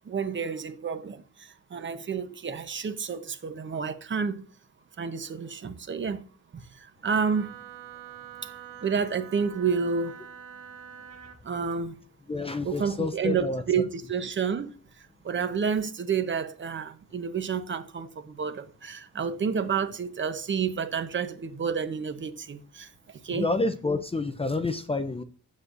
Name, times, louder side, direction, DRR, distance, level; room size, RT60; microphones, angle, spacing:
voice 1, 0.0-4.4 5.0-6.2 6.5-7.5 8.4-8.5 8.8-10.2 11.4-12.0 12.6-14.8 15.2-23.5, right 6 dB, 35° right, 0.8 m, -30 dB
Wind instrument woodwind instrument, 7.2-11.4, right 9 dB, 80° right, 1.1 m, -45 dB
voice 2, 12.3-13.6 23.4-25.2, left 3 dB, 20° left, 0.5 m, -28 dB
9.5 x 7.6 x 2.5 m
wide cardioid pair, 155°, 32 cm